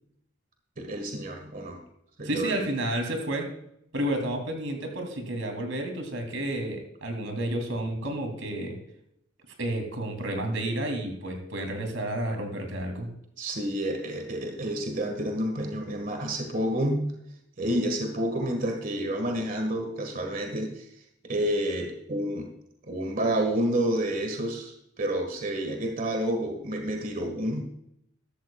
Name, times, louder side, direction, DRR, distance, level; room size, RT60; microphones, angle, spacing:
voice 1, 0.8-1.8 2.2-2.7 13.4-17.1 17.6-20.9 21.2-22.5 22.9-27.6, right 1 dB, 45° right, 4 dB, 1.7 m, -29 dB
voice 2, 2.2-3.5 3.9-8.8 9.6-13.1, right 1 dB, 90° right, 4 dB, 2.9 m, -31 dB
14.5 x 13.0 x 2.4 m, 0.76 s
head